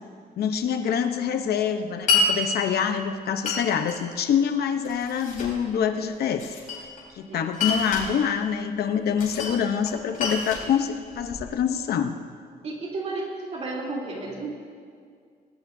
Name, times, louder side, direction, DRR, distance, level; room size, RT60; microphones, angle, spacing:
voice 1, 0.4-6.5 7.1-12.2, left 8 dB, 75° left, 7 dB, 0.9 m, -25 dB
Glass, 2.1-2.3 3.5-4.0 4.8-5.6 6.4-7.1 7.5-8.1 9.2-9.6 9.9-11.5, left 3 dB, 55° left, 4.5 m, -27 dB
voice 2, 7.3-7.7 12.6-14.6, right 3 dB, 40° right, -3 dB, 3.2 m, -33 dB
19.0 x 19.0 x 2.7 m, 2.1 s
cardioid pair, 155°, 16 cm